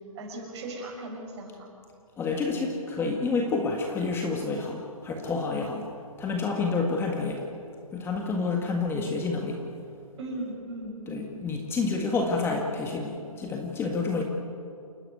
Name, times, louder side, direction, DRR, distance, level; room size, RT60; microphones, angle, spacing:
voice 1, 0.1-1.7 10.2-11.3, right 1 dB, 50° right, 1 dB, 6.9 m, -37 dB
voice 2, 2.2-5.9 6.2-7.5 7.9-9.6 11.1-14.2, left 4 dB, 15° left, 2 dB, 1.7 m, -29 dB
28.5 x 11.5 x 9.6 m, 2.5 s
hypercardioid pair, 145°, 18 cm